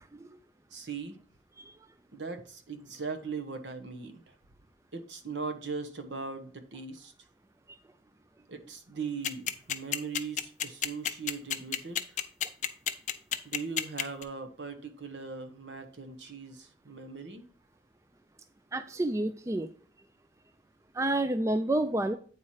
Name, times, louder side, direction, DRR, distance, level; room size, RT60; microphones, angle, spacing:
voice 1, 0.7-1.2 2.1-4.4 4.9-7.1 8.5-12.0 13.4-17.4, right 4 dB, 75° right, 8 dB, 1.1 m, -39 dB
sound 1, 9.2-14.2, left 10 dB, 40° left, 0.5 m, -29 dB
voice 2, 18.7-19.7 21.0-22.2, right 1 dB, 15° right, 10 dB, 0.3 m, -28 dB
8.7 x 4.3 x 4.8 m, 0.43 s
head